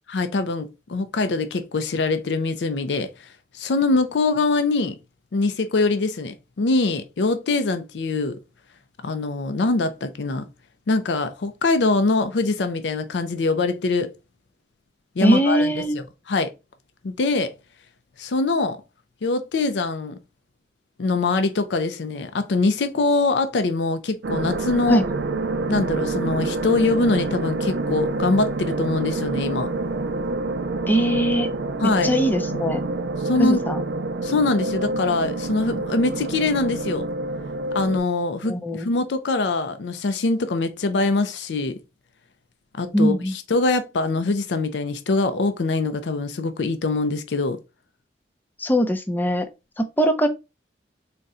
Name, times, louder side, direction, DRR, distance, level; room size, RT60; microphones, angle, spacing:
voice 1, 0.1-3.1 3.5-5.0 5.3-8.4 9.0-10.4 10.9-14.1 15.2-16.5 17.0-17.5 18.2-18.8 19.2-20.2 21.0-25.0 25.7-29.7 31.8-32.1 33.2-33.6 34.2-37.1 37.7-41.8 42.8-47.6, left 3 dB, 80° left, 0.5 m, -23 dB
voice 2, 15.2-16.0 24.9-25.0 30.9-31.5 31.8-32.8 33.4-33.8 38.4-38.9 42.9-43.3 48.6-49.5 49.8-50.3, equal, 10° left, 0.5 m, -21 dB
sound 1, 24.2-38.0, right 2 dB, 80° right, 0.5 m, -27 dB
4.0 x 2.2 x 3.6 m
head